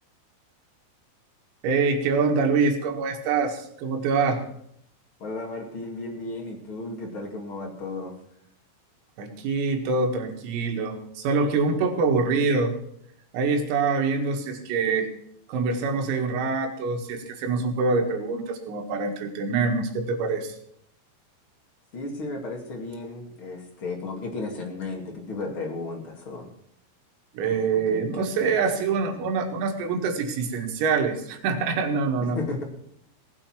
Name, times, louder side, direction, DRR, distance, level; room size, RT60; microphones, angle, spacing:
voice 1, 1.6-4.5 9.2-12.7 13.3-15.1 15.5-20.6 27.4-32.4, right 4 dB, 90° right, 3 dB, 4.6 m, -25 dB
voice 2, 5.2-8.1 21.9-26.5 27.9-28.6 29.1-29.2 32.2-32.6, left 3 dB, 35° left, 0 dB, 2.3 m, -34 dB
18.0 x 8.9 x 6.0 m, 0.70 s
omnidirectional pair, 5.9 m